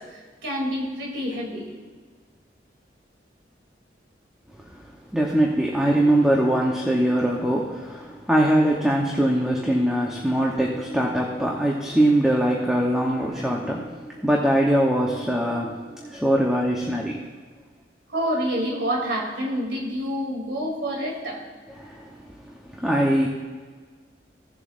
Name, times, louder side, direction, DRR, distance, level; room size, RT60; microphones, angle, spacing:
voice 1, 0.0-1.7 18.1-21.4, equal, 85° right, -1 dB, 3.0 m, -28 dB
voice 2, 4.7-17.3 21.8-22.3 22.7-23.3, right 1 dB, 5° right, -3 dB, 0.9 m, -22 dB
16.5 x 7.5 x 2.6 m, 1.5 s
head